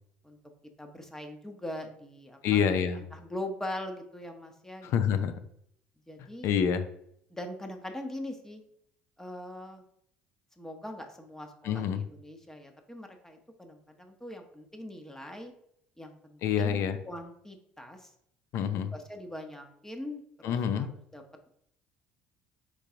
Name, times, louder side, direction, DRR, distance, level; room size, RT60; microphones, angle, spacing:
voice 1, 0.8-2.6 3.1-5.0 6.1-6.5 7.3-8.6 9.2-9.8 10.6-15.5 16.0-18.1 18.7-20.9 21.1-21.5, left 1 dB, 10° left, 4 dB, 0.9 m, -42 dB
voice 2, 2.4-3.0 4.8-5.3 6.4-6.9 11.6-12.0 16.4-17.0 18.5-18.9 20.4-20.9, left 7 dB, 60° left, 9 dB, 0.5 m, -27 dB
4.6 x 3.8 x 2.8 m, 0.72 s
hypercardioid pair, 60°, 5 cm